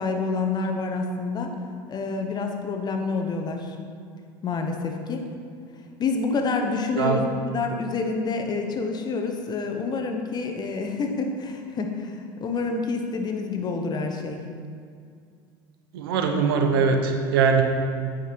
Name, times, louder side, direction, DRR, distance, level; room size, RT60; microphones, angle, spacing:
voice 1, 0.0-1.5 1.9-3.7 4.4-5.2 6.0-14.4, left 4 dB, 35° left, 4 dB, 1.0 m, -28 dB
voice 2, 15.9-17.6, right 5 dB, 80° right, 4 dB, 0.9 m, -21 dB
8.6 x 5.2 x 4.6 m, 2.3 s
hypercardioid pair, 90°, 12 cm